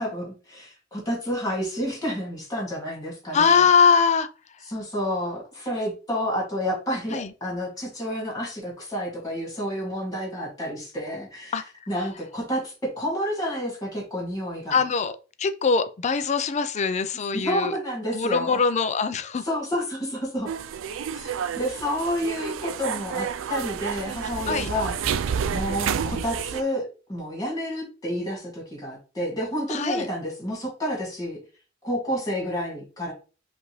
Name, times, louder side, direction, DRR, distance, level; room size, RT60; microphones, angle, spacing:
voice 1, 0.0-3.6 4.7-11.6 11.9-14.8 17.3-18.6 19.4-20.5 21.1-21.3 21.5-25.0 25.5-31.4 31.8-33.1, equal, 20° left, 2.2 m, -30 dB
voice 2, 3.3-4.3 7.1-7.3 11.5-11.6 14.7-15.1 15.4-17.7 18.1-19.5 24.5-24.7 29.7-30.0, left 5 dB, 35° left, 0.4 m, -22 dB
sound 1, 20.5-26.6, right 7 dB, 85° right, 0.4 m, -30 dB
5.1 x 2.6 x 3.1 m
head